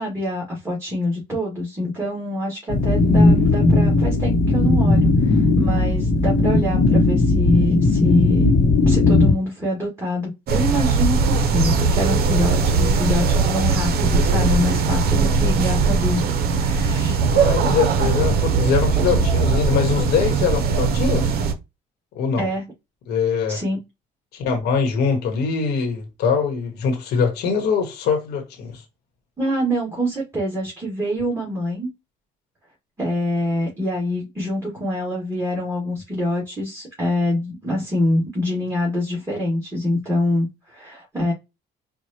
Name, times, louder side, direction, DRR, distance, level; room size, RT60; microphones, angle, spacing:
voice 1, 0.0-8.6 8.8-17.2 19.0-19.1 22.4-22.6 23.5-23.8 29.4-31.9 33.0-41.3, left 1 dB, 15° right, 1.9 m, -25 dB
sound 1, 2.7-9.3, left 2 dB, 55° left, 1.0 m, -17 dB
sound 2, 10.5-21.5, right 4 dB, 65° right, 0.8 m, -20 dB
voice 2, 17.3-21.4 22.1-22.5 23.1-23.6 24.3-28.8, left 5 dB, 75° left, 1.2 m, -22 dB
4.6 x 2.3 x 2.8 m
cardioid pair, 110°, 17 cm